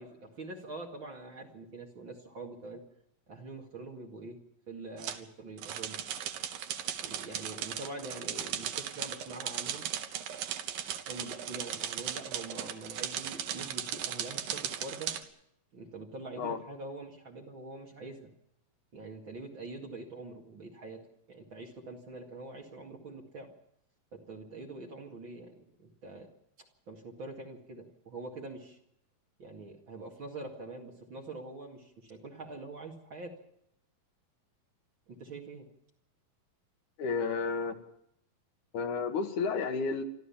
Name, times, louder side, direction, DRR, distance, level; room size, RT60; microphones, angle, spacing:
voice 1, 0.0-2.8 3.3-4.4 4.7-6.0 7.0-9.9 11.1-15.1 15.7-18.3 18.9-21.0 21.3-23.5 24.1-26.3 26.9-28.8 29.4-33.3 35.1-35.7, right 2 dB, 40° right, 2 dB, 2.6 m, -44 dB
sound 1, 5.0-5.2 5.6-15.2, right 9 dB, 80° right, 3.0 m, -37 dB
voice 2, 37.0-37.8 38.7-40.0, left 5 dB, 65° left, 7 dB, 2.5 m, -31 dB
28.5 x 13.0 x 7.1 m, 0.76 s
omnidirectional pair, 4.0 m